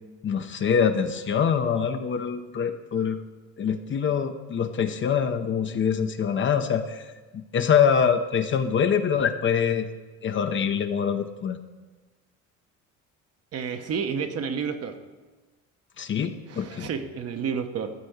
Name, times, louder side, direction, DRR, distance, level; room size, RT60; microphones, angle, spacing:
voice 1, 0.2-3.2 3.6-9.9 10.2-11.6 16.0-16.9, left 7 dB, 35° left, 8 dB, 0.7 m, -24 dB
voice 2, 13.5-15.0 16.5-17.9, right 6 dB, 45° right, 7 dB, 1.0 m, -30 dB
12.5 x 4.4 x 8.0 m, 1.3 s
supercardioid pair, 100°, 33 cm